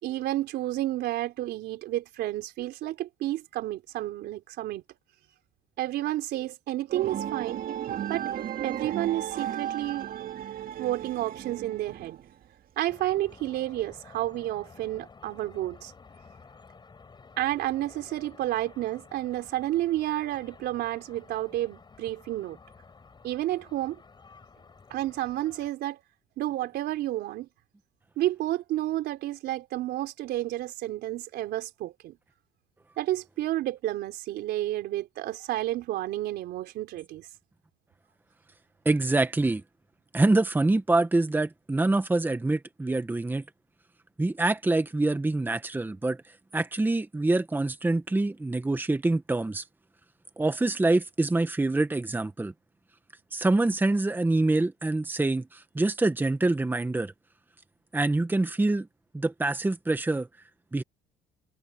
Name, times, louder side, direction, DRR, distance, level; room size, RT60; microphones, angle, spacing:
voice 1, 0.0-4.8 5.8-7.6 8.1-8.3 8.6-10.1 10.8-12.2 12.8-15.9 17.4-22.6 23.2-24.0 24.9-26.0 26.4-27.5 28.2-32.2 33.0-37.3, right 15 dB, 75° right, 4.0 m, -31 dB
sound 1, 6.9-12.4, right 10 dB, 55° right, 2.6 m, -35 dB
sound 2, 12.9-25.7, left 4 dB, 25° left, 6.5 m, -52 dB
voice 2, 38.8-39.6 40.1-43.4 44.2-46.2 46.5-49.6 50.4-52.5 53.3-57.1 57.9-58.9 59.1-60.3 60.7-60.8, right 2 dB, 10° right, 1.4 m, -25 dB
cardioid pair, 110°, 17 cm